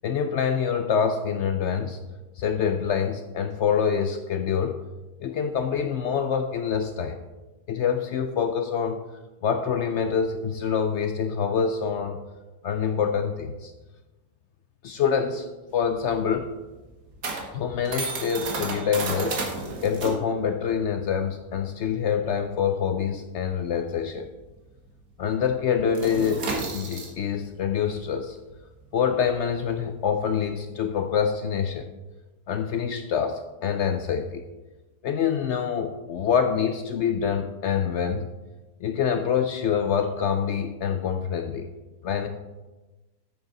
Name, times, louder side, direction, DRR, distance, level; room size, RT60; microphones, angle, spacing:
voice 1, 0.0-2.0 2.4-4.8 5.2-7.2 7.7-9.0 9.4-12.2 12.6-13.7 14.8-15.5 15.7-16.5 17.5-19.4 19.8-24.3 25.2-26.4 26.7-28.4 28.9-31.9 32.5-34.4 35.0-38.2 38.8-41.7 42.0-42.3, left 7 dB, 75° left, 6 dB, 0.6 m, -26 dB
sound 1, 15.7-24.7 24.9-25.2 25.5-31.2, right 3 dB, 60° right, 1.7 m, -34 dB
8.4 x 6.5 x 3.9 m, 1.1 s
omnidirectional pair, 1.7 m